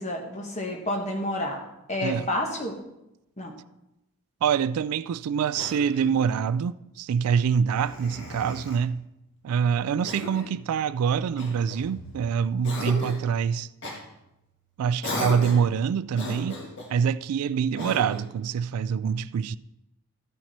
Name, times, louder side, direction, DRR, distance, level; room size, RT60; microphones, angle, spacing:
voice 1, 0.0-1.6 1.9-2.8 3.4-3.5, left 1 dB, 30° left, 1.4 m, -29 dB
voice 2, 4.4-9.0 9.4-13.7 14.8-16.6 16.9-19.6, right 7 dB, 85° right, 0.3 m, -25 dB
Cough, 5.5-6.3 7.7-8.8 10.0-10.6 11.4-12.2 12.6-13.3 13.8-14.0 15.0-15.7 16.1-16.9 17.8-18.3, left 1 dB, 55° left, 1.6 m, -36 dB
13.5 x 6.0 x 4.2 m
head